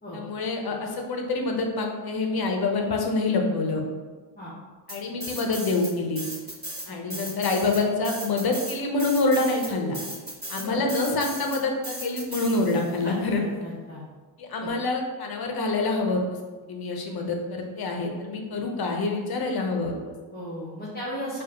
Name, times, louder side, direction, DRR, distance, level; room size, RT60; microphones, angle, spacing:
voice 1, 0.1-3.8 4.9-6.2 6.9-10.0 10.5-13.6 14.4-16.4 16.7-20.1, left 3 dB, 45° left, 2 dB, 0.8 m, -26 dB
sound 1, 4.9-5.9 6.2-13.0, right 1 dB, 20° right, 1.3 m, -36 dB
voice 2, 6.9-7.2 10.5-10.8 13.0-14.0 14.6-14.7 20.3-21.4, equal, 20° left, -7 dB, 1.0 m, -36 dB
4.8 x 2.5 x 2.9 m, 1.3 s
cardioid pair, 80°, 50 cm